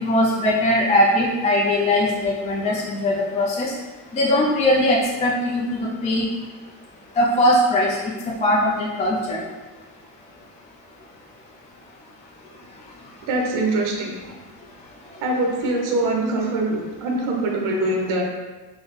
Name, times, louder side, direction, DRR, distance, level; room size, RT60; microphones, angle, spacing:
voice 1, 0.0-3.7 4.1-6.2 7.2-8.0 8.4-9.4, left 1 dB, 20° left, -3 dB, 0.3 m, -20 dB
voice 2, 13.3-14.1 15.2-18.2, right 2 dB, 60° right, 0 dB, 0.7 m, -23 dB
3.8 x 2.1 x 3.1 m, 1.2 s
cardioid pair, 115°, 37 cm